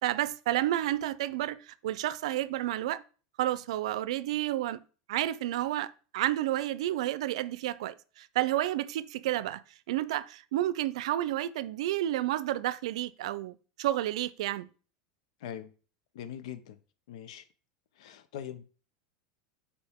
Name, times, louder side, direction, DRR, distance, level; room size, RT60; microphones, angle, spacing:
voice 1, 0.0-3.0 3.4-4.8 5.1-9.6 9.9-14.7, right 14 dB, 80° right, 0.5 m, -31 dB
voice 2, 16.1-16.8 17.1-17.4 18.0-18.6, left 9 dB, 80° left, 0.8 m, -41 dB
9.8 x 4.3 x 3.6 m
supercardioid pair, 145°, 3 cm